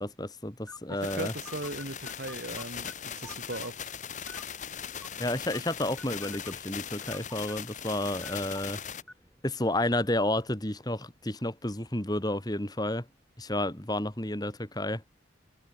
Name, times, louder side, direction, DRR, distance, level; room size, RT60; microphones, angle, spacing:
voice 1, 0.0-1.3 5.2-8.8 9.4-13.0 13.4-15.0, left 1 dB, 20° left, 2.8 m, -31 dB
sound 1, 0.7-10.2, left 1 dB, 5° left, 4.1 m, -53 dB
voice 2, 0.9-3.9, right 2 dB, 60° right, 2.6 m, -38 dB
sound 2, 1.0-9.0, left 8 dB, 40° left, 1.2 m, -40 dB
head